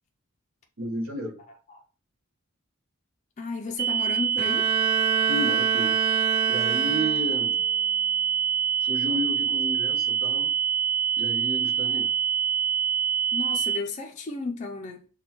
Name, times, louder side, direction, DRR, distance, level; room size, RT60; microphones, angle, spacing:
voice 1, 0.8-1.4 5.3-6.0 6.5-7.6 8.8-10.5 11.2-12.1, equal, 65° right, 0.9 m, -32 dB
voice 2, 1.5-1.8 3.4-4.7 11.8-12.0 13.3-15.0, left 3 dB, 30° left, 0.4 m, -34 dB
sound 1, 3.8-13.8, right 7 dB, 40° right, 1.5 m, -25 dB
Bowed string instrument, 4.4-7.6, right 7 dB, 85° right, 0.5 m, -28 dB
6.0 x 2.2 x 2.9 m
head